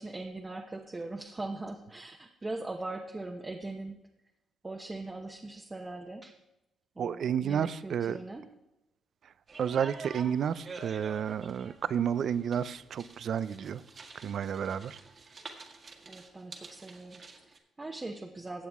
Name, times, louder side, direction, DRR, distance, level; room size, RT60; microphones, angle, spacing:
voice 1, 0.0-4.0 4.6-6.3 7.0-8.5 16.1-18.7, right 2 dB, 20° right, 1 dB, 1.0 m, -40 dB
voice 2, 7.0-8.2 9.2-9.3 9.6-13.8 14.1-15.0, right 8 dB, 60° right, 16 dB, 0.5 m, -31 dB
sound 1, 9.5-17.6, right 4 dB, 45° right, 1.8 m, -48 dB
15.5 x 8.3 x 3.6 m, 0.92 s
cardioid pair, 90°, 0 cm